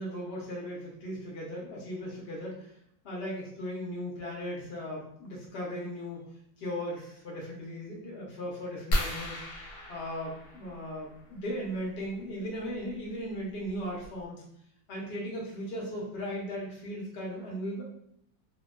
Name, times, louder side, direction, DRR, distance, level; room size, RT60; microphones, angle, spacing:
voice 1, 0.0-2.7 3.0-6.3 6.6-9.4 9.9-14.4 14.9-17.8, equal, 50° left, -3 dB, 0.9 m, -37 dB
sound 1, 8.9-11.3 12.9-13.1 13.7-13.8 14.0-14.3, equal, 70° left, 1.1 m, -34 dB
2.8 x 2.2 x 2.2 m, 0.72 s
omnidirectional pair, 1.8 m